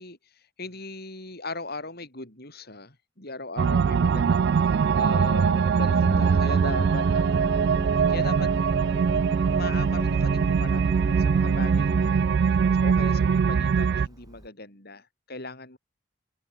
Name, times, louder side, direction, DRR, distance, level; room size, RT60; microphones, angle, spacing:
voice 1, 0.0-7.5 8.1-8.5 9.5-10.8 11.2-15.8, left 3 dB, 50° left, 6.0 m, -39 dB
sound 1, 3.6-14.1, right 6 dB, 55° right, 0.3 m, -22 dB
Organ, 4.3-14.5, equal, 20° right, 3.8 m, -36 dB
open air
head